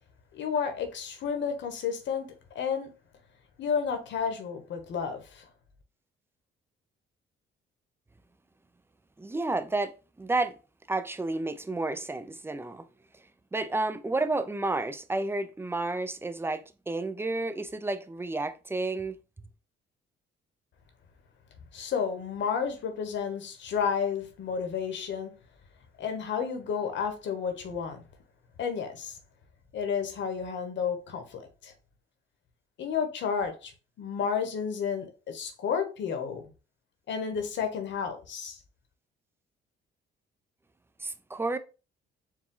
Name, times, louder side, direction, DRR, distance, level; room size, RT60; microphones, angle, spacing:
voice 1, 0.3-2.9 3.6-5.5 21.7-25.3 26.0-28.0 28.6-29.2 29.7-31.7 32.8-33.7 34.0-36.5 37.1-38.6, left 6 dB, 70° left, 1.0 m, -31 dB
voice 2, 9.2-9.9 10.2-10.6 10.9-12.9 13.5-19.2 41.0-41.6, right 2 dB, 10° right, 0.4 m, -31 dB
4.6 x 2.3 x 3.7 m
cardioid pair, 90°, 20 cm